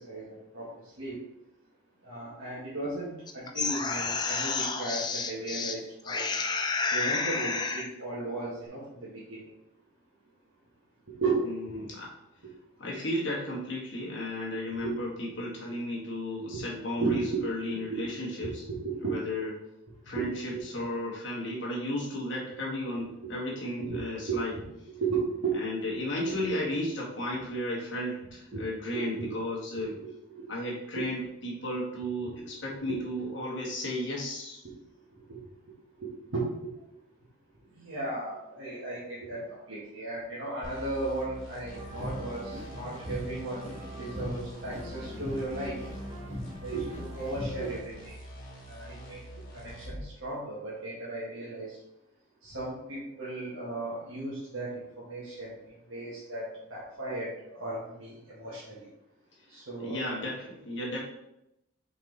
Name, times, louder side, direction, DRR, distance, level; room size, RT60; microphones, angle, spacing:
voice 1, 0.1-0.7 1.0-1.2 2.0-6.3 6.9-9.4 11.2-11.4 14.8-15.4 16.5-16.6 17.0-17.4 17.9-18.1 18.4-18.5 18.8-19.1 20.1-20.2 20.5-20.6 23.8-24.0 24.3-25.6 28.5-29.3 29.8-30.5 31.0-31.1 32.3-32.5 32.9-33.0 35.3-35.4 36.0-36.7 37.8-43.6 44.0-45.8 46.6-48.2 48.7-49.2 49.5-51.8 52.4-54.7 55.0-55.5 55.9-58.6 59.5-60.0, right 3 dB, 75° right, -8 dB, 1.7 m, -35 dB
sound 1, 3.3-5.8 6.1-7.9, left 4 dB, 20° left, 0.4 m, -30 dB
voice 2, 11.4-12.1 12.8-18.6 19.0-19.5 20.0-24.5 25.5-30.0 30.5-34.6 59.8-61.0, left 1 dB, 60° left, -4 dB, 1.9 m, -34 dB
sound 2, 40.6-50.1, equal, 80° left, 2.0 m, -45 dB
sound 3, 41.7-47.7, equal, 30° right, 2.1 m, -39 dB
5.3 x 4.4 x 4.0 m, 0.85 s
head